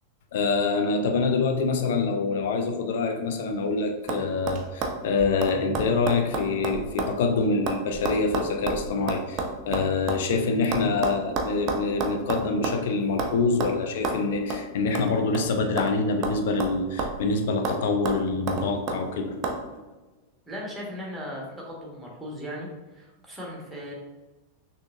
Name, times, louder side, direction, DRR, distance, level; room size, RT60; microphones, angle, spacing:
voice 1, 0.3-19.4, left 4 dB, 55° left, 4 dB, 0.5 m, -25 dB
sound 1, 3.3-3.7 4.1-4.2 4.5-7.2 7.4-10.2 10.7-12.8 13.2-13.3 13.6-13.7 14.0-14.2 14.5-14.6 14.9-16.0 16.2-17.3 17.6-17.8 18.1-19.0 19.4-19.6, right 3 dB, 35° right, 0.6 m, -30 dB
voice 2, 20.5-23.9, equal, 5° right, -3 dB, 1.2 m, -37 dB
6.2 x 2.7 x 2.4 m, 1.2 s
figure-of-eight pair, 90°, 0 cm